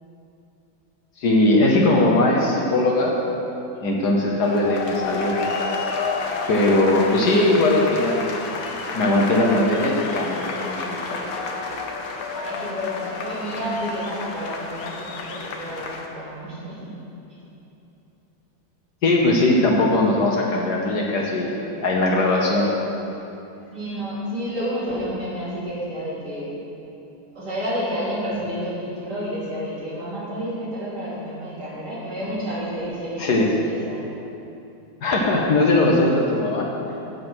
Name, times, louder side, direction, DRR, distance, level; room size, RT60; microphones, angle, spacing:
voice 1, 1.2-3.2 3.8-5.4 6.5-8.3 8.9-11.3 19.0-22.7 33.2-33.5 35.0-36.7, left 2 dB, 60° left, -1 dB, 1.4 m, -20 dB
sound 1, 4.4-16.1, left 4 dB, 75° left, 1.7 m, -30 dB
voice 2, 12.3-16.8 23.7-26.5 27.4-34.0, equal, 55° right, -9 dB, 3.6 m, -30 dB
8.9 x 7.8 x 6.1 m, 2.9 s
omnidirectional pair, 2.2 m